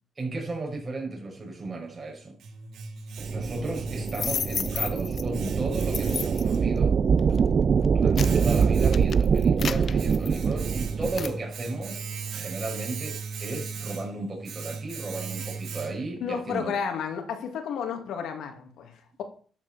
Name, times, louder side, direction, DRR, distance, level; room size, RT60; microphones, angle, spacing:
voice 1, 0.2-2.3 3.3-7.0 7.9-16.8, right 2 dB, 30° right, 6.0 m, -35 dB
Domestic sounds home sounds, 1.9-16.2, right 4 dB, 70° right, 2.1 m, -38 dB
sound 1, 3.2-11.3, right 6 dB, 50° right, 0.6 m, -24 dB
sound 2, 4.1-5.2 5.8-6.6 7.2-7.4 7.8-10.7 11.2-11.4, left 6 dB, 50° left, 0.5 m, -33 dB
voice 2, 16.2-19.2, left 7 dB, 75° left, 2.5 m, -32 dB
12.0 x 6.1 x 7.0 m
cardioid pair, 85°, 0 cm